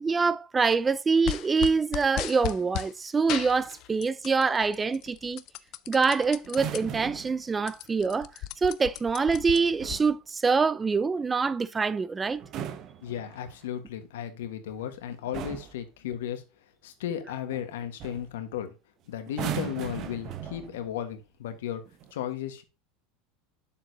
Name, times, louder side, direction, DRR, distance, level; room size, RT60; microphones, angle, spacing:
voice 1, 0.0-5.4 5.9-8.3 8.6-12.4, right 4 dB, 20° right, 0.4 m, -25 dB
sound 1, 1.2-2.9 3.3-4.4 4.7-6.8 7.2-7.3 7.5-10.0, left 14 dB, 55° left, 0.5 m, -35 dB
sound 2, 6.4-7.4 9.5-10.1 12.3-13.7 14.7-14.9 15.3-15.8 17.5-17.7 18.0-18.3 19.3-20.9 21.9-22.1, right 9 dB, 45° right, 0.9 m, -38 dB
voice 2, 13.0-16.4 16.8-18.7 19.1-21.8 22.1-22.6, left 10 dB, 85° left, 1.4 m, -35 dB
7.4 x 6.9 x 2.8 m
supercardioid pair, 115°, 0 cm